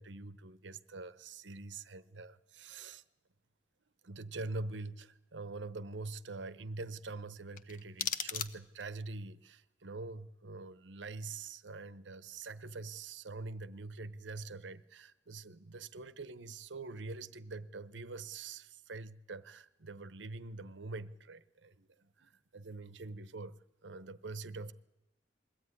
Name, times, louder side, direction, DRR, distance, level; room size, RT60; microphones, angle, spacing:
voice 1, 0.0-3.0 4.0-24.7, right 3 dB, 80° right, 15 dB, 0.9 m, -45 dB
sound 1, 7.5-9.0, left 7 dB, 50° left, 0.9 m, -39 dB
22.0 x 15.0 x 9.7 m, 0.98 s
head